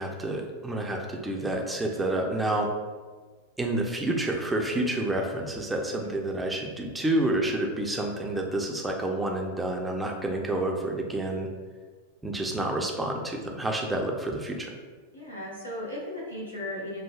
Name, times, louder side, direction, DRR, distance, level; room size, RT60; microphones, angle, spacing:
voice 1, 0.0-2.7 3.6-11.5 12.2-14.7, right 1 dB, 10° right, 1 dB, 0.6 m, -29 dB
voice 2, 15.1-17.0, left 1 dB, 80° left, -6 dB, 1.2 m, -36 dB
7.1 x 2.6 x 2.3 m, 1.4 s
figure-of-eight pair, 90°, 0 cm